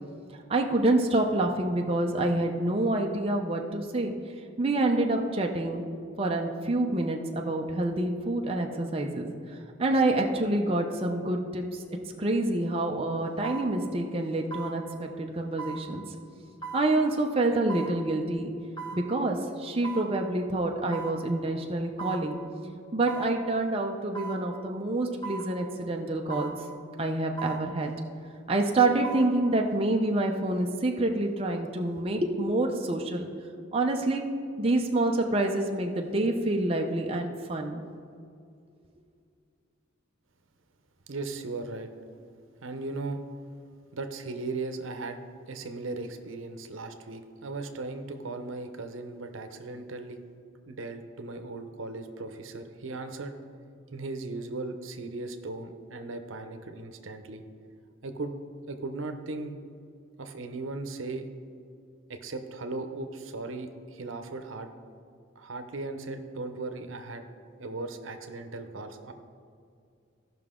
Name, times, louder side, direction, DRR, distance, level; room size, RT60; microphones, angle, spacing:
voice 1, 0.5-4.1 4.6-5.8 6.2-9.3 9.8-11.6 12.2-16.0 16.7-18.5 18.9-22.4 22.9-26.5 27.0-27.9 28.5-33.3 33.7-34.2 34.6-37.8, right 2 dB, 30° right, 1 dB, 0.6 m, -27 dB
sound 1, 12.3-12.4 13.4-13.7 14.5-14.8 15.6-15.8 16.6-16.9 17.7-17.9 18.8-19.0 19.8-20.1 20.9-21.2 22.0-22.3 23.1-23.3 24.1-24.4 25.2-25.5 26.3-26.6 27.4-27.6 28.8-29.3 29.7-29.8, right 4 dB, 20° left, 1.4 m, -38 dB
voice 2, 41.1-41.9 42.6-43.2 43.9-45.2 45.5-50.2 50.6-53.4 53.9-57.4 58.0-58.3 58.7-59.6 60.2-61.3 62.1-64.7 65.4-67.2 67.6-69.1, right 3 dB, 80° right, 7 dB, 0.8 m, -37 dB
15.5 x 5.9 x 3.7 m, 2.3 s
head